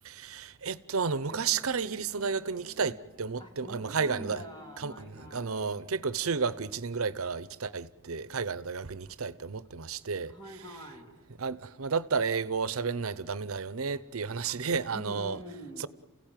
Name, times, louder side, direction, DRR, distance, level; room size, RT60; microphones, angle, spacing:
voice 1, 0.0-4.4 4.8-10.3 11.4-15.4 15.8-15.9, right 5 dB, 90° right, 0.8 m, -32 dB
sound 1, 1.1-3.5 3.8-6.2, equal, 30° right, 4.5 m, -53 dB
voice 2, 3.4-5.6 10.3-11.1 14.9-15.9, equal, 20° left, 3.4 m, -45 dB
29.0 x 16.5 x 9.1 m
head